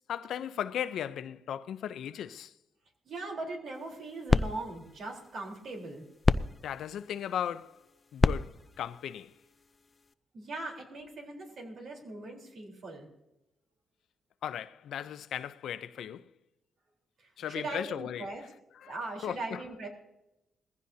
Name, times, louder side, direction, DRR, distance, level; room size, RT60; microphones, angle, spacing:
voice 1, 0.1-2.5 6.6-7.8 8.1-9.3 14.4-16.3 17.4-18.3 18.7-19.7, left 9 dB, 75° left, 0.6 m, -37 dB
voice 2, 3.1-6.0 10.3-13.1 17.2-17.3 17.5-18.4 18.9-19.9, right 2 dB, 65° right, 3.9 m, -40 dB
sound 1, 3.7-10.1, left 3 dB, 25° left, 0.4 m, -32 dB
21.0 x 15.5 x 2.8 m
cardioid pair, 110°, 0 cm